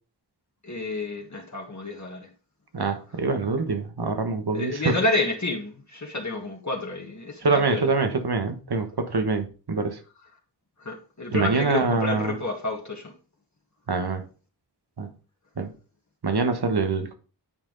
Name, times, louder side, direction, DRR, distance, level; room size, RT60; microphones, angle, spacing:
voice 1, 0.6-2.3 4.5-7.9 10.8-13.1, left 2 dB, 40° left, 1.6 m, -29 dB
voice 2, 2.7-5.0 7.4-10.0 11.3-12.4 13.9-14.2 15.0-15.1 15.6-15.7 16.2-17.1, right 4 dB, 60° right, 1.3 m, -25 dB
9.4 x 4.4 x 3.9 m
wide cardioid pair, 60°, 44 cm